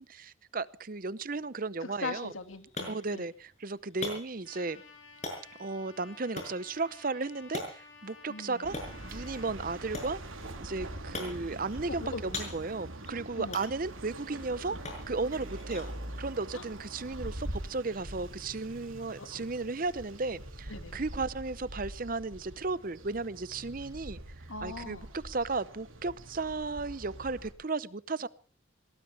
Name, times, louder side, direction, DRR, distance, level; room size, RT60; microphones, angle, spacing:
voice 1, 0.0-2.3 2.9-4.8 5.6-8.8 9.0-10.2 10.6-14.8 15.1-15.9 16.2-25.0 25.2-28.3, right 3 dB, 45° right, 0.7 m, -35 dB
voice 2, 1.8-3.3 8.3-8.7 12.0-12.2 13.4-13.6 14.7-14.8 16.5-16.7 19.2-19.4 20.7-21.0 24.5-25.1, left 3 dB, 90° left, 2.2 m, -41 dB
sound 1, 2.2-17.8, left 2 dB, 35° left, 6.2 m, -45 dB
Trumpet, 4.4-9.5, left 4 dB, 75° left, 6.1 m, -53 dB
sound 2, 8.6-27.5, right 1 dB, 90° right, 3.6 m, -44 dB
22.5 x 18.5 x 3.4 m
head